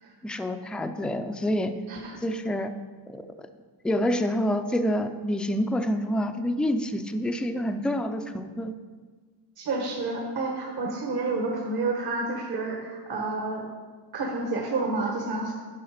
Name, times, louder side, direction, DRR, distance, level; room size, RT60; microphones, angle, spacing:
voice 1, 0.2-1.7 2.2-2.7 3.1-3.2 3.8-8.7, equal, ahead, 7 dB, 0.4 m, -27 dB
voice 2, 1.9-2.2 9.6-13.6 14.1-15.5, right 3 dB, 55° right, 0 dB, 1.4 m, -29 dB
10.0 x 5.6 x 5.0 m, 1.5 s
cardioid pair, 100°, 45 cm